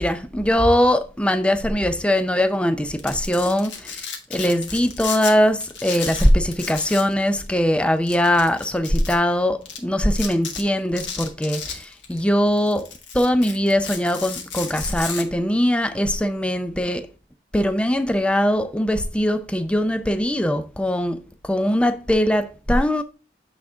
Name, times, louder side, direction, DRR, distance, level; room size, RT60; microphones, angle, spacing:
voice 1, 0.0-12.9 13.1-17.1 17.5-23.0, equal, 5° left, 0.4 m, -21 dB
Domestic sounds home sounds, 2.9-5.3 5.6-7.1 7.4-7.5 8.1-9.1 9.7-9.8 10.1-10.6 11.0-12.2 12.6-15.2, left 6 dB, 90° left, 1.4 m, -33 dB
8.5 x 3.7 x 3.6 m
head